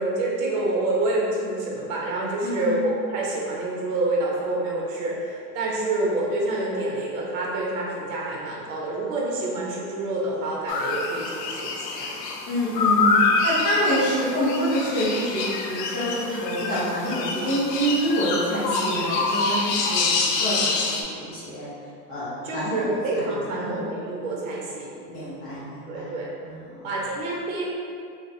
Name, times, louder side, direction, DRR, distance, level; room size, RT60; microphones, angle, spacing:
voice 1, 0.0-12.1 22.4-24.9 25.9-26.3 26.8-27.7, right 2 dB, 55° right, -3 dB, 0.8 m, -27 dB
voice 2, 2.4-2.8 12.5-21.7 22.1-22.8 23.1-23.8 25.1-26.1 26.4-26.9, equal, 20° left, -9 dB, 0.4 m, -27 dB
sound 1, 10.7-21.0, left 4 dB, 85° left, 0.6 m, -26 dB
2.3 x 2.3 x 4.0 m, 2.4 s
supercardioid pair, 165°, 47 cm